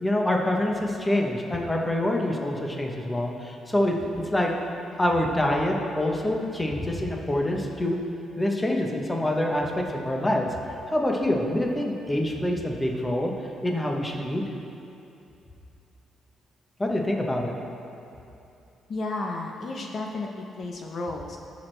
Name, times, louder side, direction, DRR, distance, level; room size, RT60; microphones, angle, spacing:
voice 1, 0.0-4.5 5.0-8.0 8.4-10.5 10.9-13.3 13.6-14.4 16.8-17.5, left 1 dB, 10° left, 1 dB, 0.9 m, -26 dB
voice 2, 18.9-21.4, left 2 dB, 45° left, 1 dB, 0.7 m, -33 dB
17.0 x 6.2 x 3.3 m, 2.8 s
cardioid pair, 145°, 0 cm